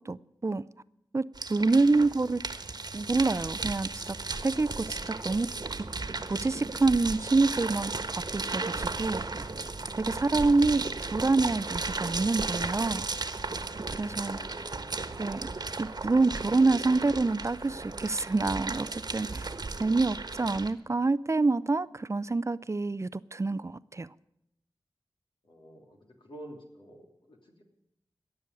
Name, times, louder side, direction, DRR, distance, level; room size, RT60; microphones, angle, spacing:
voice 1, 0.1-0.6 1.1-1.2 1.5-2.4 2.9-4.2 4.4-5.5 6.3-9.4 10.0-10.8 11.1-13.1 13.9-14.4 15.2-15.5 15.8-19.5 19.8-24.1, right 3 dB, 35° right, 17 dB, 0.5 m, -27 dB
sound 1, 1.3-20.7, right 3 dB, 55° right, 1.3 m, -35 dB
voice 2, 1.6-2.0 14.2-14.9 19.7-20.0 25.4-27.6, equal, 75° left, 1 dB, 3.1 m, -50 dB
17.0 x 7.1 x 9.7 m, 0.82 s
cardioid pair, 45°, 8 cm